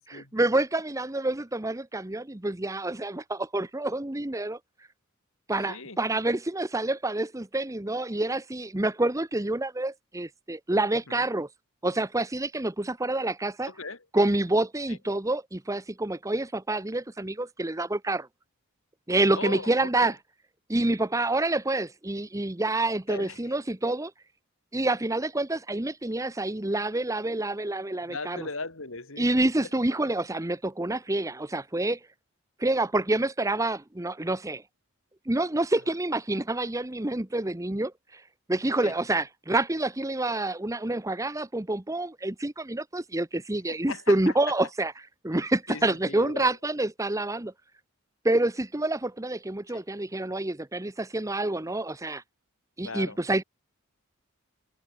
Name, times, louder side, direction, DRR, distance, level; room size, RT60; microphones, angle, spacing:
voice 1, 0.1-4.6 5.5-11.5 11.8-13.7 14.1-18.3 19.1-20.1 20.7-24.1 24.7-28.5 29.2-32.0 32.6-34.6 35.3-38.2 38.5-44.9 45.2-47.5 48.2-52.2 52.8-53.4, right 2 dB, 15° right, 0.8 m, -27 dB
voice 2, 5.7-6.0 11.1-11.3 13.6-14.0 14.9-15.0 19.3-20.1 23.1-23.4 28.0-29.3 35.9-36.0 38.8-38.9 43.7-44.3 45.7-46.6 49.7-49.8 52.8-53.2, left 3 dB, 60° left, 3.0 m, -38 dB
head